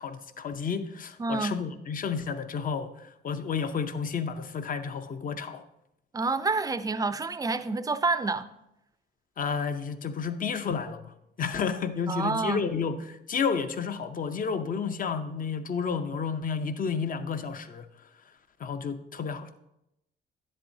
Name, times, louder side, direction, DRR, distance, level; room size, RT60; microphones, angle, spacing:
voice 1, 0.0-5.6 9.4-11.1 11.4-17.9 18.6-19.6, left 6 dB, 45° left, 0.7 m, -31 dB
voice 2, 1.2-1.6 6.1-8.5 12.1-12.6, right 3 dB, 20° right, 0.4 m, -28 dB
10.5 x 7.5 x 2.7 m
cardioid pair, 90°, 20 cm